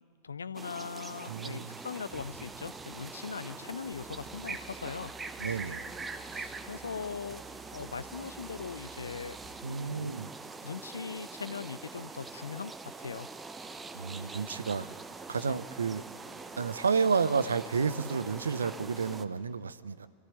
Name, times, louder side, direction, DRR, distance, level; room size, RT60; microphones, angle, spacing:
voice 1, 0.0-5.1 6.3-7.4 7.7-9.4 9.9-10.3 10.6-13.3 15.4-15.6, left 5 dB, 75° left, 18 dB, 0.5 m, -40 dB
sound 1, 0.5-19.2, right 4 dB, 15° right, 1.0 m, -44 dB
voice 2, 1.3-1.8 5.4-5.8 9.6-10.3 13.9-14.9 15.3-16.0 16.6-20.1, right 5 dB, 70° right, 16 dB, 0.7 m, -31 dB
sound 2, 2.0-9.5, right 2 dB, 40° right, 2.8 m, -56 dB
sound 3, 3.9-10.0, right 3 dB, 20° left, 2.6 m, -54 dB
27.0 x 15.0 x 9.3 m, 2.2 s
figure-of-eight pair, 90°, 0 cm